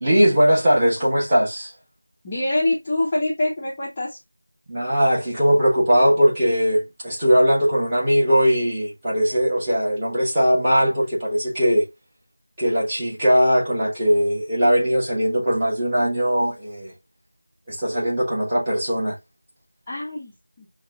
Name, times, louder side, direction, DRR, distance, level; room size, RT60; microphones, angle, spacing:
voice 1, 0.0-1.7 4.7-11.9 12.6-16.9 17.7-19.2, equal, 10° right, 1.1 m, -20 dB
voice 2, 2.2-4.2 19.9-20.7, left 1 dB, 15° left, 0.6 m, -25 dB
6.4 x 2.3 x 2.3 m
figure-of-eight pair, 175°, 0 cm